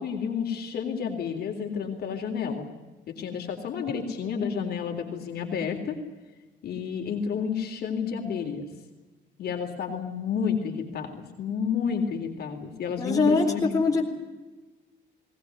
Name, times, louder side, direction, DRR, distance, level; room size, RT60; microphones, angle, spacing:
voice 1, 0.0-2.7 3.1-6.0 6.6-8.7 9.4-13.8, left 6 dB, 55° left, 2 dB, 3.7 m, -30 dB
voice 2, 13.0-13.5 13.7-14.0, left 3 dB, 15° left, 0 dB, 4.0 m, -22 dB
19.5 x 19.5 x 9.6 m, 1.2 s
cardioid pair, 165°, 20 cm